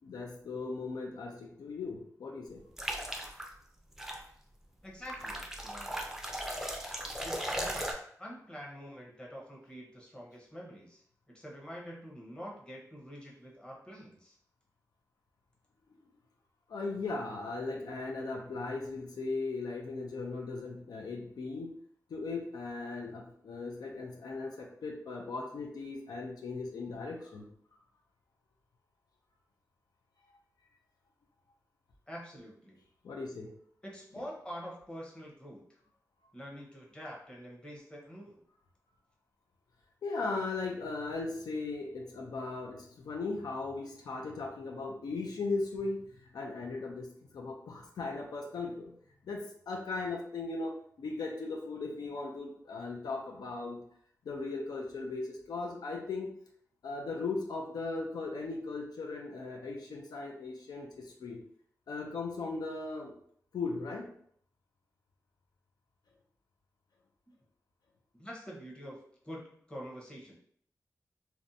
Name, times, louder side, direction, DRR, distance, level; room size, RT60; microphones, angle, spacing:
voice 1, 0.0-2.6 5.7-5.8 16.7-21.8 22.1-27.5 33.0-33.5 40.0-47.1 47.3-48.9 49.2-53.8 54.2-56.3 56.8-61.4 61.9-63.1 63.5-64.1, left 3 dB, 90° left, 1 dB, 0.4 m, -38 dB
sound 1, 2.8-3.5 4.0-4.2 5.1-7.9, right 1 dB, 5° right, 0.4 m, -37 dB
voice 2, 4.8-6.0 7.2-7.9 8.2-14.4 32.1-32.8 33.8-35.6 36.3-38.4 68.2-69.0 69.2-70.4, equal, 15° left, -3 dB, 0.8 m, -46 dB
2.6 x 2.2 x 2.6 m, 0.64 s
wide cardioid pair, 75°, 7 cm